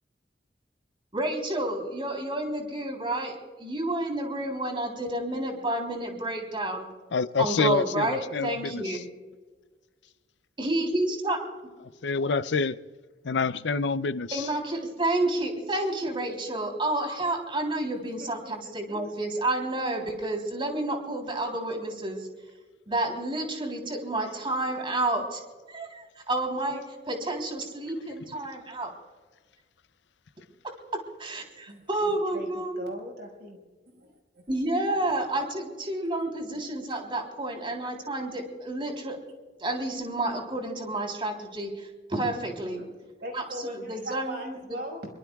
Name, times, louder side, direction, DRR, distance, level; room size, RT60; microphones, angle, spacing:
voice 1, 1.1-6.9 7.4-9.0 10.6-11.4 14.3-22.3 22.9-25.4 25.7-28.9 31.2-32.9 34.5-39.2 39.6-42.8 43.3-44.6, right 1 dB, 30° right, 3.5 m, -30 dB
voice 2, 7.1-8.8 12.0-12.8 13.2-14.4, left 4 dB, 85° left, 0.6 m, -27 dB
voice 3, 18.2-19.0 31.7-33.6 33.9-34.1 42.8-42.9 43.2-45.1, equal, 65° right, 5.4 m, -40 dB
25.5 x 24.0 x 2.4 m
head